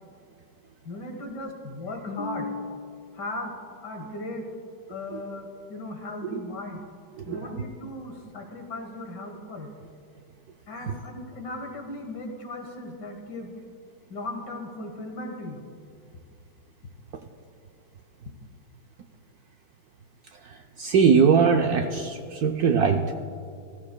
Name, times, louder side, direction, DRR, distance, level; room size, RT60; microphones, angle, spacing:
voice 1, 0.8-3.5 3.8-4.5 4.9-6.8 7.3-9.7 10.7-13.5 14.1-15.6, left 2 dB, 60° left, 3 dB, 2.0 m, -36 dB
voice 2, 7.2-7.5 10.9-11.0 20.3-23.1, right 6 dB, 70° right, 4 dB, 0.9 m, -22 dB
20.0 x 14.0 x 2.2 m, 2.4 s
omnidirectional pair, 2.2 m